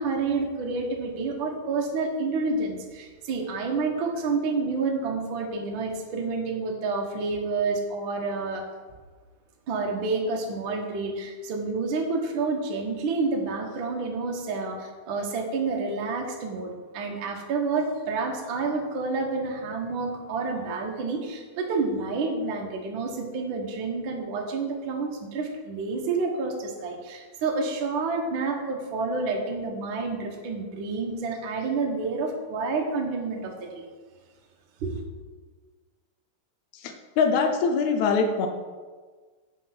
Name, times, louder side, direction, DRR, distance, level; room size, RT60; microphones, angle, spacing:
voice 1, 0.0-8.7 9.7-33.8 34.8-35.0, right 3 dB, 85° right, 1 dB, 1.0 m, -29 dB
voice 2, 36.8-38.5, left 5 dB, 85° left, 5 dB, 1.6 m, -23 dB
8.4 x 6.3 x 5.9 m, 1.5 s
omnidirectional pair, 4.3 m